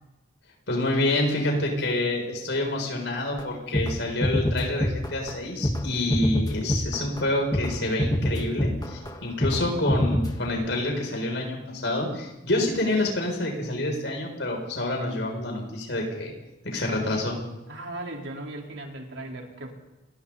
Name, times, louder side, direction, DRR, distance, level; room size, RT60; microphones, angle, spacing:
voice 1, 0.7-16.3 16.6-17.4, left 1 dB, 70° left, 0 dB, 7.2 m, -27 dB
sound 1, 3.4-3.5 3.7-4.0 4.2-5.3 5.6-5.8 6.1-7.2 7.5-7.7 8.0-9.2 9.4-9.6 9.9-10.5, equal, 20° left, 1.8 m, -25 dB
voice 2, 17.7-19.7, right 2 dB, 90° right, 0 dB, 4.4 m, -37 dB
28.5 x 23.0 x 4.3 m, 0.97 s
head